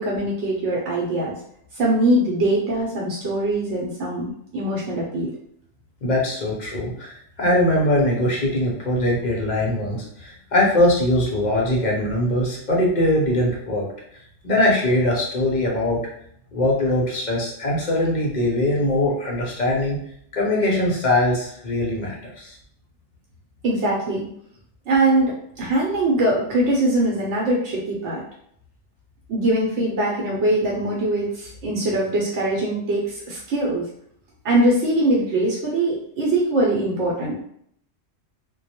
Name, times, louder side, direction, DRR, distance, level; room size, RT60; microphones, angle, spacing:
voice 1, 0.0-1.3 1.7-5.3 23.6-24.3 24.9-28.2 29.3-33.8 34.4-37.4, right 1 dB, 75° right, -4 dB, 0.9 m, -22 dB
voice 2, 6.0-13.9 14.1-16.0 16.5-20.0 20.3-22.6, left 1 dB, 50° left, -3 dB, 0.6 m, -21 dB
2.2 x 2.0 x 2.8 m, 0.67 s
omnidirectional pair, 1.2 m